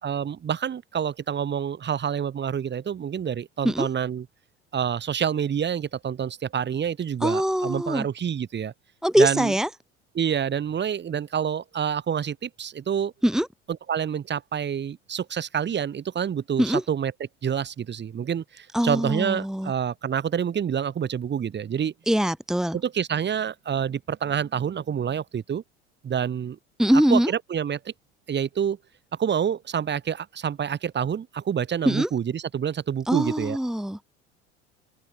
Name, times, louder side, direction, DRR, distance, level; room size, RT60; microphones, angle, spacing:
voice 1, 0.0-4.3 4.7-8.7 9.2-9.5 10.1-13.1 13.9-17.1 17.4-21.9 22.7-25.6 26.0-26.6 26.9-27.9 28.3-28.8 29.2-33.6, right 8 dB, 30° right, 4.5 m, -27 dB
voice 2, 7.2-8.1 9.0-9.7 13.2-13.5 16.6-16.8 18.7-19.7 22.1-22.8 26.8-27.3 31.9-32.1 33.1-34.0, equal, ahead, 1.8 m, -22 dB
open air
figure-of-eight pair, 70°, 35 cm